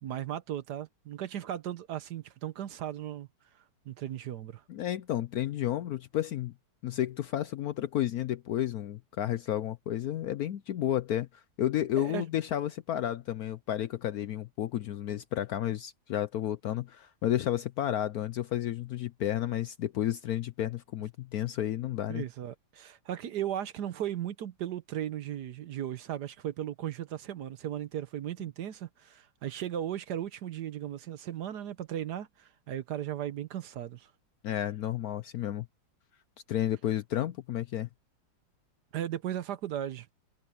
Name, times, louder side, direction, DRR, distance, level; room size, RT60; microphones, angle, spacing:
voice 1, 0.0-3.3 3.9-4.6 12.0-12.2 22.1-34.1 38.9-40.1, right 11 dB, 65° right, 1.3 m, -36 dB
voice 2, 4.7-6.5 6.8-11.3 11.6-22.2 34.4-35.7 36.5-37.9, left 12 dB, 70° left, 0.9 m, -31 dB
omnidirectional pair, 2.0 m